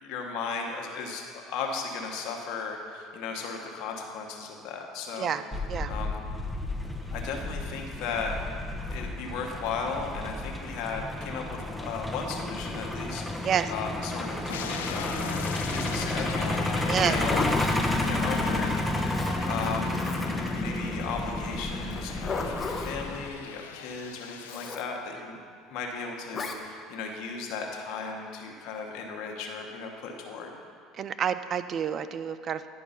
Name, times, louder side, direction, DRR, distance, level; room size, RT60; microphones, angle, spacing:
voice 1, 0.0-5.4 5.9-6.2 7.1-8.4 8.8-17.4 18.0-18.7 19.1-25.4 25.7-30.5, left 5 dB, 65° left, 1 dB, 1.2 m, -36 dB
Truck, 5.5-23.3, left 1 dB, ahead, 0.9 m, -31 dB
sound 1, 14.5-24.8, left 8 dB, 85° left, 0.4 m, -40 dB
voice 2, 16.9-17.2 30.9-32.7, right 8 dB, 45° right, 12 dB, 0.4 m, -28 dB
Zipper (clothing), 17.2-17.8 19.1-20.5 21.9-23.0 24.5-24.9 26.3-26.6, left 4 dB, 30° left, 0.9 m, -34 dB
10.5 x 4.6 x 5.6 m, 2.2 s
hypercardioid pair, 75°, 0 cm